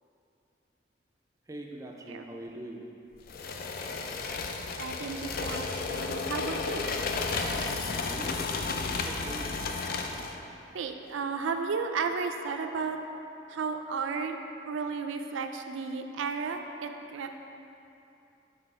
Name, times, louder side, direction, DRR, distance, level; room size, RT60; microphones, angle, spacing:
voice 1, 1.5-2.8 8.0-8.5 9.0-9.6, right 1 dB, 15° right, 0 dB, 0.4 m, -42 dB
sound 1, 3.3-10.4, left 4 dB, 50° left, 0.3 m, -33 dB
voice 2, 4.8-6.9 10.7-13.0 13.5-14.4 14.7-17.3, right 5 dB, 85° right, 6 dB, 0.4 m, -33 dB
5.5 x 4.4 x 4.2 m, 2.8 s
head